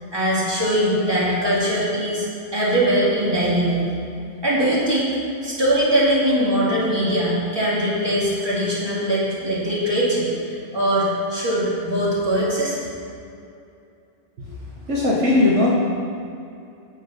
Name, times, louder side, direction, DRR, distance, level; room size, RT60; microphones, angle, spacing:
voice 1, 0.1-2.2 2.5-3.8 4.4-5.2 5.4-12.8, equal, 20° right, -7 dB, 2.3 m, -21 dB
voice 2, 14.4-15.7, left 2 dB, 65° right, -4 dB, 1.5 m, -20 dB
8.6 x 7.2 x 5.6 m, 2.5 s
omnidirectional pair, 1.3 m